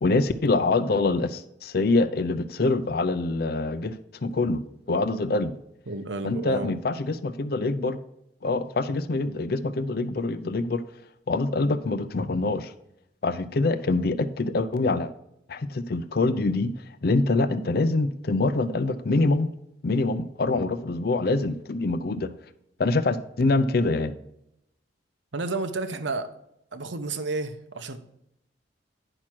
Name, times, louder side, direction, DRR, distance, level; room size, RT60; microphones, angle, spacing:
voice 1, 0.0-4.6 4.9-5.5 6.2-8.0 8.4-10.8 11.3-12.7 13.2-15.1 15.5-16.7 17.0-19.5 19.8-22.3 22.8-24.1, left 3 dB, 55° left, 12 dB, 0.5 m, -25 dB
voice 2, 5.9-6.7 25.3-26.3 26.7-28.0, right 3 dB, 90° right, 10 dB, 0.9 m, -31 dB
9.9 x 6.0 x 4.5 m, 0.81 s
head